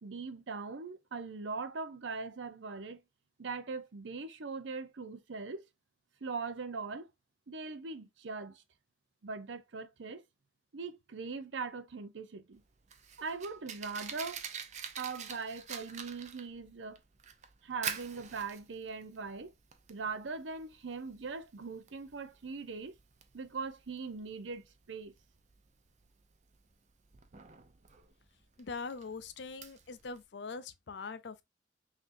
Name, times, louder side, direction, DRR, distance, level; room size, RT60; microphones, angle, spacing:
voice 1, 0.0-3.0 3.4-5.6 6.2-7.1 7.5-8.6 9.2-10.2 10.7-12.6 13.2-14.4 15.0-17.0 17.6-19.5 19.9-22.9 23.3-25.1, right 4 dB, 90° right, 0.7 m, -41 dB
Fire, 12.5-30.2, right 7 dB, 40° right, 0.6 m, -46 dB
voice 2, 28.6-31.4, left 4 dB, 70° left, 0.5 m, -42 dB
5.7 x 2.8 x 2.6 m
head